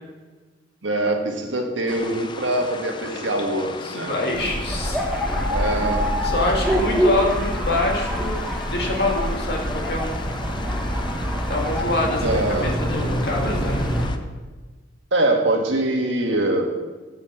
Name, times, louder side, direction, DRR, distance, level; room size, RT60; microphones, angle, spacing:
voice 1, 0.8-4.1 5.5-6.1 12.2-12.8 15.1-16.7, right 1 dB, 80° right, 2 dB, 1.5 m, -23 dB
sound 1, 1.9-14.2, left 3 dB, 25° left, 0.5 m, -37 dB
voice 2, 3.6-5.1 6.2-10.2 11.5-13.8, left 2 dB, 55° left, -1 dB, 2.0 m, -26 dB
sound 2, 4.3-14.1, equal, ahead, 1.3 m, -25 dB
7.3 x 6.4 x 7.6 m, 1.3 s
head